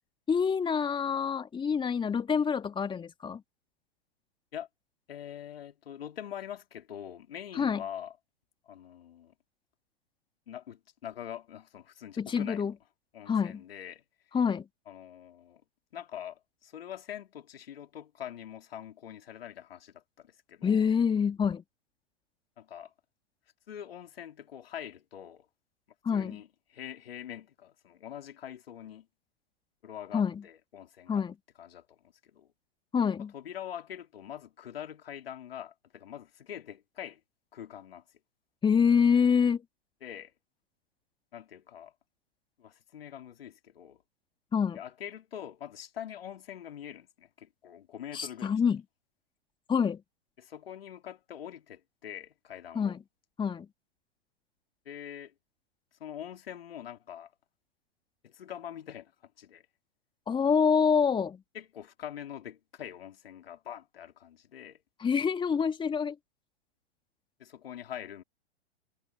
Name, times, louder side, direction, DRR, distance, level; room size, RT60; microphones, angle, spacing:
voice 1, 0.3-3.4 7.6-7.8 12.2-12.7 13.3-13.6 14.3-14.6 20.6-21.6 26.0-26.4 30.1-30.4 31.1-31.3 32.9-33.3 38.6-39.6 44.5-44.8 48.1-48.8 49.7-50.0 52.7-53.0 53.4-53.7 60.3-61.4 65.0-66.2, left 6 dB, 15° left, 2.2 m, -26 dB
voice 2, 5.1-8.2 8.6-9.3 10.5-12.6 13.1-14.0 14.9-15.6 15.9-20.8 22.6-22.9 23.7-25.5 26.1-29.1 29.8-31.2 31.6-32.0 32.3-32.5 33.3-37.2 37.5-38.0 40.0-40.3 41.3-41.9 42.6-44.0 44.7-48.5 50.4-52.9 54.8-55.3 56.0-57.3 58.2-59.6 61.5-64.8 67.4-68.2, left 10 dB, 70° left, 3.0 m, -44 dB
figure-of-eight pair, 105°, 31 cm